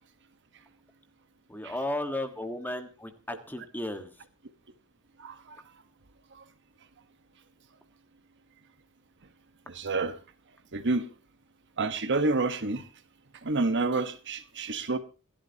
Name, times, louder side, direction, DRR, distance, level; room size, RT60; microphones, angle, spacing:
voice 1, 1.5-4.1, left 1 dB, 10° left, 1.5 m, -34 dB
voice 2, 5.2-5.6 9.7-10.1 10.7-11.1 11.8-12.8 13.4-15.0, right 3 dB, 55° right, 1.2 m, -28 dB
27.0 x 11.5 x 2.8 m
head